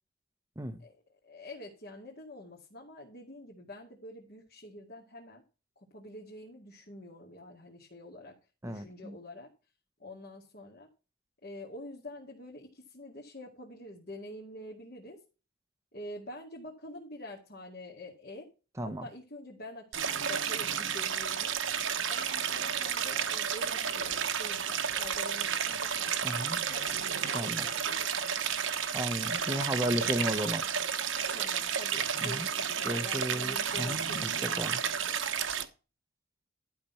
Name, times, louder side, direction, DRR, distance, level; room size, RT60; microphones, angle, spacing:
voice 1, 1.2-5.4 5.8-8.4 8.7-9.5 10.0-10.9 11.4-15.2 15.9-18.5 18.8-21.6 22.1-28.3 31.3-35.2, left 1 dB, 45° left, 2.1 m, -47 dB
voice 2, 8.6-9.1 18.8-19.1 26.2-26.6 27.3-27.7 28.9-30.6 32.2-32.5 32.8-34.8, equal, 15° right, 0.9 m, -34 dB
Stream, 19.9-35.6, right 7 dB, 65° right, 1.2 m, -32 dB
12.0 x 6.0 x 5.6 m
head